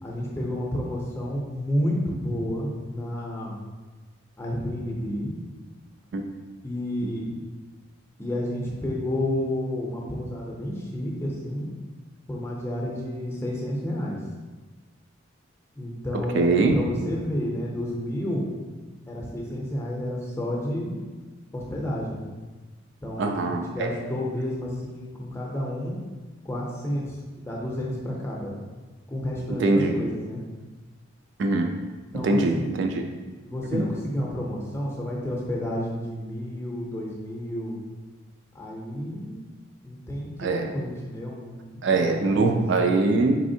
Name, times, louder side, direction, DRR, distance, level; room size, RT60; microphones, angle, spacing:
voice 1, 0.0-3.6 4.4-5.3 6.6-7.3 8.2-11.7 12.3-14.2 15.8-18.5 19.1-21.0 21.5-22.2 23.0-26.0 26.4-28.5 29.1-30.4 32.1-32.8 33.4-37.8 38.5-39.5 39.8-42.6, left 1 dB, 10° left, -3 dB, 0.6 m, -30 dB
voice 2, 16.3-16.8 23.2-23.9 29.6-30.0 31.4-31.7 32.2-32.9 33.7-33.8 40.4-40.7 41.8-43.4, right 3 dB, 60° right, 4 dB, 0.3 m, -22 dB
4.2 x 3.4 x 2.7 m, 1.3 s
head